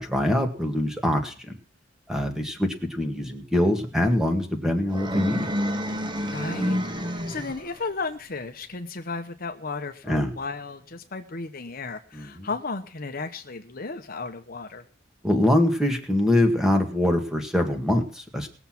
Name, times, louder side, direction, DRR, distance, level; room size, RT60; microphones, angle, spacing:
voice 1, 0.0-1.3 2.1-5.5 10.1-10.3 12.1-12.5 15.2-18.5, left 1 dB, 5° right, 4 dB, 2.0 m, -24 dB
sound 1, 4.9-7.8, equal, 25° right, 1.3 m, -28 dB
voice 2, 6.0-6.8 7.3-14.8, left 3 dB, 50° left, 6 dB, 1.0 m, -34 dB
19.5 x 7.1 x 6.0 m, 0.42 s
head